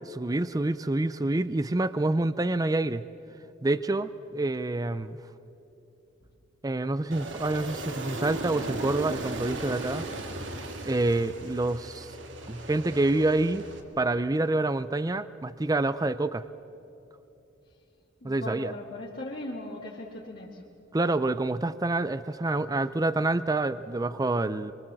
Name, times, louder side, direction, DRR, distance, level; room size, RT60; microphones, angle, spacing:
voice 1, 0.1-3.0 3.6-5.2 6.6-10.1 10.8-12.1 12.5-13.6 14.0-16.5 18.2-18.7 20.9-24.7, right 2 dB, 20° right, 14 dB, 0.5 m, -27 dB
Aircraft, 7.1-13.8, right 2 dB, 75° right, 2.3 m, -37 dB
voice 2, 18.2-20.6, left 1 dB, 50° left, -5 dB, 2.3 m, -39 dB
26.0 x 24.0 x 7.7 m, 2.8 s
head